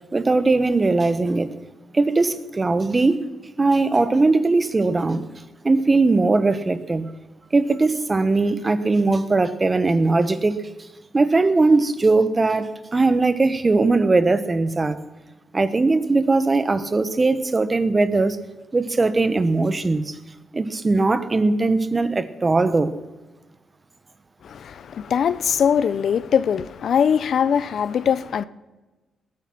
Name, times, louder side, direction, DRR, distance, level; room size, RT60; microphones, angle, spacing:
voice 1, 0.1-1.5 1.9-3.3 3.6-5.2 5.6-7.1 7.5-10.6 11.1-15.0 15.5-18.4 18.7-20.2 20.5-22.9, right 3 dB, 30° right, 1.1 m, -20 dB
voice 2, 24.4-28.5, left 7 dB, 65° left, 0.6 m, -21 dB
19.5 x 9.4 x 5.9 m
cardioid pair, 80°, 0 cm